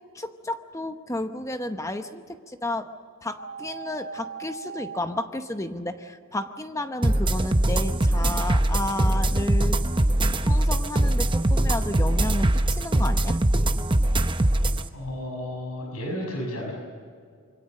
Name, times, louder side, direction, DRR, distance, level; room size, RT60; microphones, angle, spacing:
voice 1, 0.1-2.9 3.2-9.8 10.4-13.4, left 1 dB, 15° left, 8 dB, 0.8 m, -32 dB
sound 1, 3.4-5.0, right 5 dB, 65° right, 2.6 m, -38 dB
sound 2, 7.0-14.8, right 1 dB, 20° right, 0.8 m, -22 dB
voice 2, 14.9-16.7, left 1 dB, 80° left, 1 dB, 6.1 m, -32 dB
26.5 x 24.0 x 6.5 m, 2.1 s
head